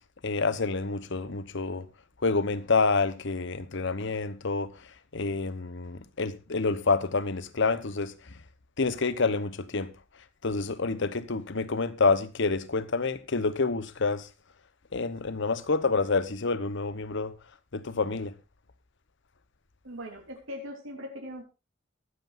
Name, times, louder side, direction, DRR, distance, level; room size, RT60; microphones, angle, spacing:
voice 1, 0.2-1.9 2.2-4.9 5.1-8.1 8.8-9.9 10.4-14.3 14.9-17.3 17.7-18.4, left 4 dB, 65° left, 1.0 m, -28 dB
voice 2, 19.8-21.4, equal, 85° right, 3.5 m, -40 dB
23.0 x 7.9 x 2.6 m
head